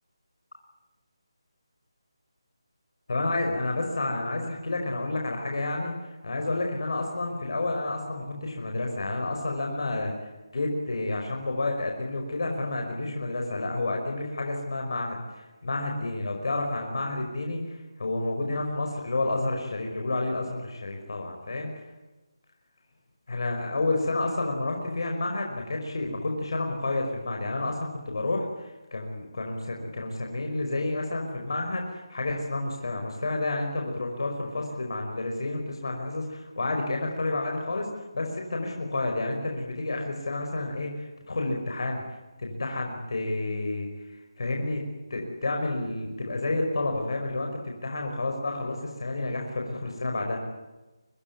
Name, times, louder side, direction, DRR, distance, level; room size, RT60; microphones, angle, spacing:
voice 1, 3.1-10.1 10.5-21.7 23.3-37.9 38.1-44.8 45.1-50.4, left 2 dB, 55° left, 2 dB, 5.4 m, -30 dB
24.5 x 20.0 x 9.6 m, 1.1 s
figure-of-eight pair, 175°, 3 cm